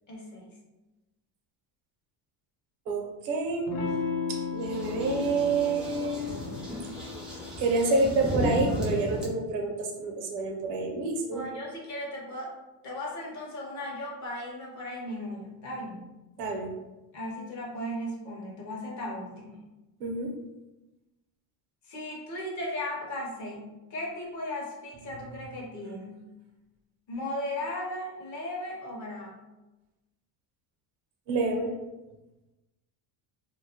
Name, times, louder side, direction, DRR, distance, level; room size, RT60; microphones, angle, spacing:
voice 1, 0.1-0.5 11.3-12.5 12.8-16.1 17.1-19.6 21.8-26.3 27.1-29.3, left 1 dB, 40° left, -1 dB, 0.6 m, -36 dB
voice 2, 2.9-3.7 4.3-6.3 7.6-11.4 16.4-16.7 20.0-20.3 31.3-31.7, right 3 dB, 75° right, 1 dB, 0.7 m, -28 dB
Electric guitar / Strum, 3.7-8.8, left 5 dB, 85° left, 0.6 m, -36 dB
sound 1, 4.6-9.3, equal, ahead, 0.4 m, -34 dB
2.2 x 2.0 x 2.7 m, 1.0 s
cardioid pair, 125°, 45 cm